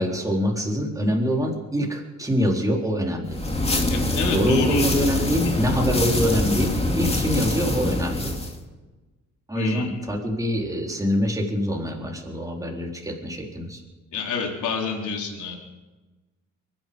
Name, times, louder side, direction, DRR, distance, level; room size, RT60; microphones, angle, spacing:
voice 1, 0.0-3.4 4.3-8.3 9.5-13.8, equal, 10° right, 0 dB, 4.0 m, -25 dB
sound 1, 3.3-8.6, left 1 dB, 20° left, 2.6 m, -24 dB
voice 2, 3.9-4.8 5.4-5.5 9.5-9.9 14.1-15.6, left 5 dB, 75° left, 0 dB, 3.9 m, -28 dB
23.5 x 11.0 x 5.3 m, 1.2 s
cardioid pair, 90°, 30 cm